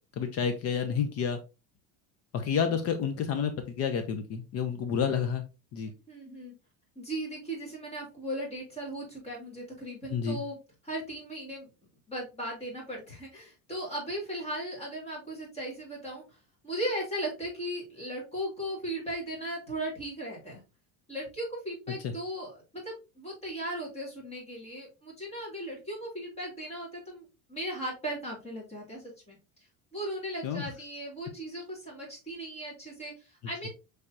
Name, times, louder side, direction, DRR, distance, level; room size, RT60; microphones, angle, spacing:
voice 1, 0.2-1.4 2.3-5.4 5.7-5.9 10.1-10.4 30.4-30.6, left 7 dB, 40° left, 7 dB, 0.5 m, -29 dB
voice 2, 6.1-6.6 7.0-10.6 10.8-11.7 12.1-16.4 16.6-20.6 21.1-29.4 29.9-33.7, right 1 dB, 15° left, -3 dB, 2.0 m, -37 dB
5.9 x 3.3 x 2.5 m, 0.30 s
cardioid pair, 170°, 39 cm